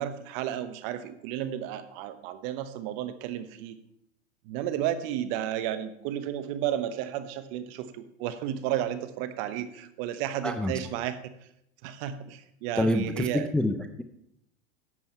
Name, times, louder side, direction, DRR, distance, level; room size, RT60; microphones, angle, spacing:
voice 1, 0.0-3.8 4.4-11.2 11.8-13.5, right 11 dB, 55° right, 12 dB, 1.1 m, -32 dB
voice 2, 10.4-10.8 12.8-13.3 13.5-14.0, left 1 dB, 5° left, 8 dB, 0.3 m, -27 dB
11.0 x 7.7 x 4.4 m, 0.76 s
hypercardioid pair, 115°, 34 cm